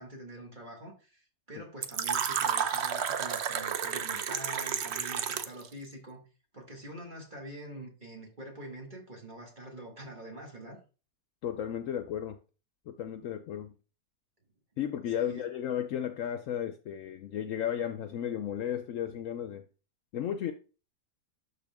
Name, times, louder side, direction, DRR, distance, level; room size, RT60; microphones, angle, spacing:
voice 1, 0.0-6.2 6.5-10.8 15.2-15.4, right 1 dB, 35° right, 2.0 m, -45 dB
Fill (with liquid), 1.8-5.7, right 8 dB, 55° right, 0.9 m, -31 dB
voice 2, 11.4-12.4 12.9-13.7 14.8-19.6 20.1-20.5, left 10 dB, 70° left, 1.0 m, -34 dB
11.5 x 4.2 x 3.5 m
omnidirectional pair, 1.5 m